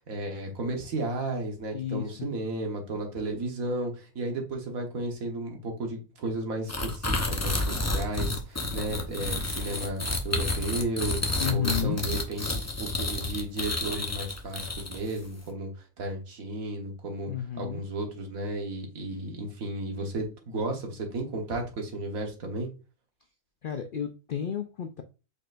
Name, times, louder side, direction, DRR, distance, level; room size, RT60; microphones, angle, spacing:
voice 1, 0.1-17.3 17.6-22.7, right 2 dB, 80° right, 2 dB, 1.7 m, -33 dB
voice 2, 1.7-2.3 11.4-12.2 17.3-17.9 23.6-25.0, left 9 dB, 70° left, 6 dB, 0.5 m, -32 dB
sound 1, 6.7-15.2, left 2 dB, 20° left, 0.5 m, -30 dB
4.9 x 4.2 x 2.5 m, 0.33 s
omnidirectional pair, 1.4 m